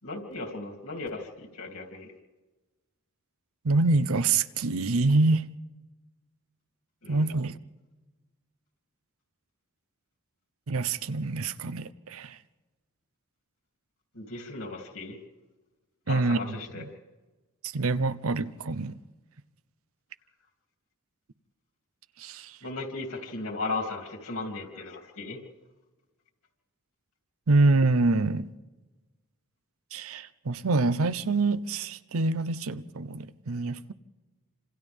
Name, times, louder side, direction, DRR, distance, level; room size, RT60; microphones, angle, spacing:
voice 1, 0.0-2.1 7.0-7.3 14.1-15.2 16.1-16.8 22.6-25.4, left 3 dB, 75° left, 3.1 m, -36 dB
voice 2, 3.6-5.5 7.1-7.6 10.7-12.4 16.1-16.8 17.6-19.0 22.2-22.6 27.5-28.5 29.9-33.9, right 3 dB, 70° right, 0.6 m, -26 dB
28.5 x 26.0 x 3.6 m
head